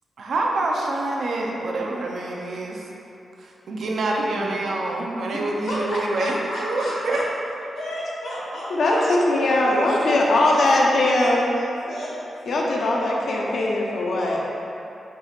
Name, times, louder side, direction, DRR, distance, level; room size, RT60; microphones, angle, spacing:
voice 1, 0.2-2.9 3.4-7.2 9.9-10.0, right 2 dB, 70° right, -1 dB, 0.5 m, -26 dB
voice 2, 5.7-7.2 7.7-9.6 10.5-12.7, equal, 90° left, -9 dB, 1.5 m, -33 dB
voice 3, 8.7-11.6 12.5-14.4, left 2 dB, 70° left, -2 dB, 0.5 m, -20 dB
4.6 x 2.4 x 4.1 m, 2.8 s
cardioid pair, 95°, 0 cm